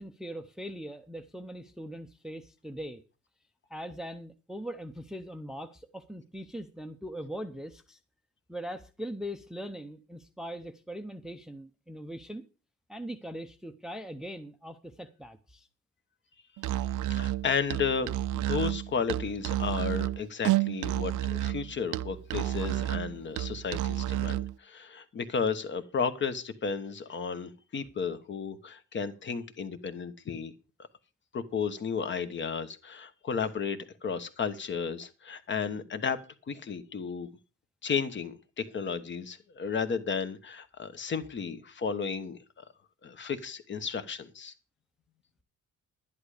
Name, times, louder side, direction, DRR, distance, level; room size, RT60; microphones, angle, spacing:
voice 1, 0.0-3.0 3.7-8.0 8.5-12.5 12.9-15.7, equal, ahead, 0.6 m, -41 dB
Musical instrument, 16.6-24.5, right 14 dB, 85° right, 0.6 m, -30 dB
voice 2, 17.1-30.5 31.3-36.2 36.5-37.3 37.8-42.6 43.0-44.5, left 6 dB, 40° left, 1.2 m, -33 dB
11.5 x 10.5 x 4.9 m
cardioid pair, 180°, 30 cm